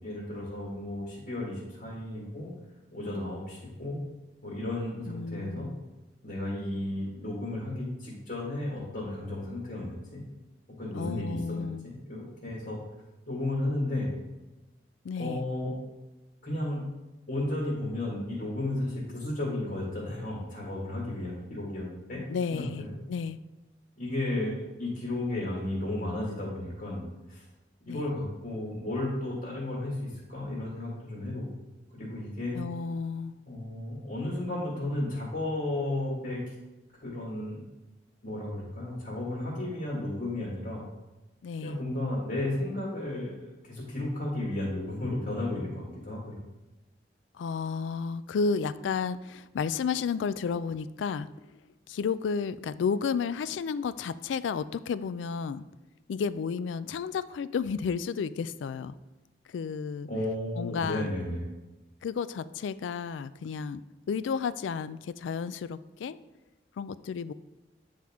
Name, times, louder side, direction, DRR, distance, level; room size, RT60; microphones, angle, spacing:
voice 1, 0.0-2.5 2.9-4.0 4.4-5.7 6.2-10.2 10.8-12.8 13.3-14.1 15.2-15.7 16.4-16.9 17.3-22.2 22.5-22.9 24.0-27.4 27.9-31.5 31.9-32.6 33.5-36.4 37.0-37.6 38.2-40.8 41.6-46.4 60.1-61.4, left 1 dB, 50° left, -4 dB, 1.8 m, -33 dB
voice 2, 5.1-5.8 10.9-11.9 15.0-15.4 22.3-23.4 27.9-28.1 32.5-33.4 41.4-41.8 47.3-51.3 51.9-55.7 56.1-59.0 59.5-60.1 60.6-61.1 62.0-66.2 66.8-67.3, left 5 dB, 90° left, 15 dB, 0.3 m, -32 dB
9.2 x 4.5 x 3.5 m, 1.1 s
head